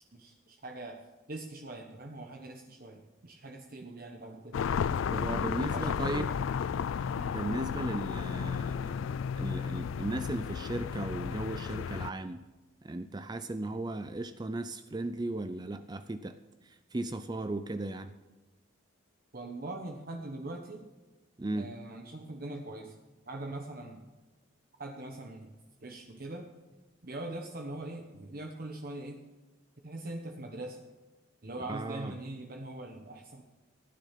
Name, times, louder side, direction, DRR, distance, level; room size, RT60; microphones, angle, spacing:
voice 1, 0.1-1.0 1.3-4.7 5.7-6.3 7.1-7.3 19.3-20.9 21.5-23.0 23.3-24.1 24.8-25.5 25.8-26.5 27.0-29.2 29.8-30.8 31.4-33.4, right 2 dB, 45° right, 3 dB, 1.1 m, -42 dB
sound 1, 4.5-12.1, left 7 dB, 70° left, 0.3 m, -33 dB
voice 2, 4.9-6.3 7.3-9.1 9.4-12.4 12.8-16.4 16.6-18.1 21.4-21.7 31.7-32.1, right 2 dB, 20° right, 10 dB, 0.4 m, -36 dB
15.5 x 10.0 x 5.8 m, 1.2 s
head